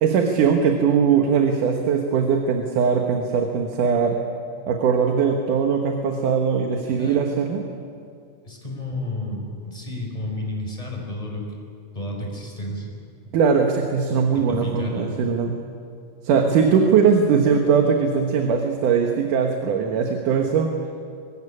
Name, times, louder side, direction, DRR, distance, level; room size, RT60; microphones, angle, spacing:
voice 1, 0.0-4.2 4.7-7.6 13.3-15.6 16.2-20.7, right 6 dB, 70° right, 3 dB, 2.8 m, -20 dB
voice 2, 6.9-7.3 8.4-11.4 11.9-13.0 14.3-15.1, left 1 dB, 10° left, 0 dB, 4.8 m, -31 dB
24.0 x 15.5 x 9.9 m, 2.4 s
omnidirectional pair, 3.9 m